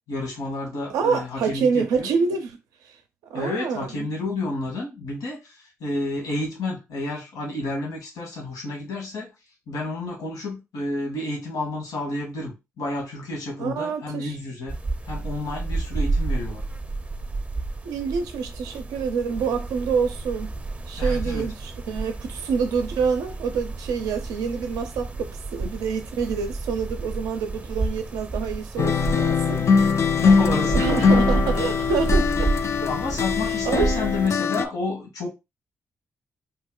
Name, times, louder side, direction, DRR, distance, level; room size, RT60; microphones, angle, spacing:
voice 1, 0.1-2.1 3.3-9.3 9.7-14.7 15.0-16.6 21.0-21.5 30.1-31.2 32.8-35.3, left 2 dB, 75° left, 1.2 m, -30 dB
voice 2, 0.9-2.6 2.8-2.9 3.3-4.1 13.6-14.4 17.8-20.5 20.9-29.6 30.7-32.5 33.7-33.9, right 5 dB, 85° right, 0.4 m, -27 dB
sound 1, 14.7-34.3, right 3 dB, 20° right, 0.5 m, -30 dB
sound 2, 28.8-34.6, left 5 dB, 50° left, 0.4 m, -21 dB
2.7 x 2.1 x 3.7 m
hypercardioid pair, 45°, 6 cm